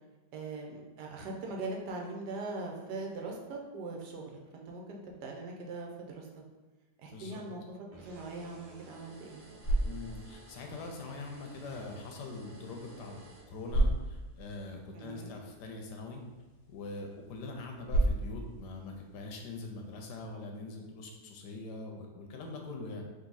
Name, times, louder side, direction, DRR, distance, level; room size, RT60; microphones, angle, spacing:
voice 1, 0.3-6.4 7.0-9.5 14.9-15.4, right 3 dB, 90° right, 0 dB, 1.3 m, -41 dB
voice 2, 7.1-7.4 9.8-13.2 13.5-16.2 16.7-23.0, left 3 dB, 85° left, 2 dB, 1.3 m, -43 dB
sound 1, 7.9-14.1, right 3 dB, 45° right, 0.6 m, -54 dB
sound 2, 9.2-20.3, right 1 dB, 65° left, 1.4 m, -36 dB
3.9 x 2.7 x 3.9 m, 1.2 s
omnidirectional pair, 1.7 m